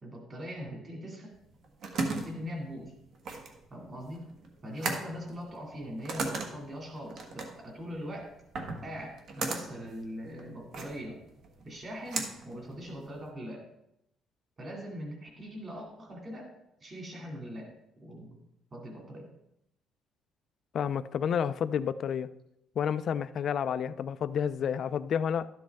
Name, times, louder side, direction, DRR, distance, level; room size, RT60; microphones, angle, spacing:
voice 1, 0.0-1.3 2.0-2.9 3.7-4.2 4.6-8.3 8.8-11.2 11.6-13.6 14.6-16.5 16.8-17.7 18.0-18.4 18.7-19.2, equal, 25° right, 2.3 m, -41 dB
sound 1, 1.4-13.3, right 3 dB, 55° right, 1.4 m, -38 dB
voice 2, 20.7-22.3 22.8-25.5, left 8 dB, 45° left, 0.4 m, -30 dB
12.0 x 7.6 x 3.5 m
cardioid pair, 165°, 0 cm